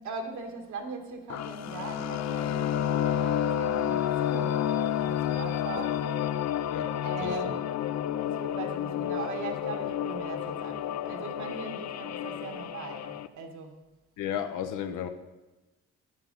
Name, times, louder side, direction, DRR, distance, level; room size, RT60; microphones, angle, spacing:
voice 1, 0.0-6.2 6.9-7.7 8.2-13.8, right 4 dB, 75° right, 4 dB, 1.7 m, -40 dB
sound 1, 1.3-13.3, left 10 dB, 60° left, 0.5 m, -30 dB
voice 2, 5.8-6.3 6.7-6.9 7.2-7.6 14.2-15.1, left 9 dB, 90° left, 8 dB, 0.9 m, -34 dB
10.5 x 9.1 x 4.0 m, 1.1 s
cardioid pair, 90°, 30 cm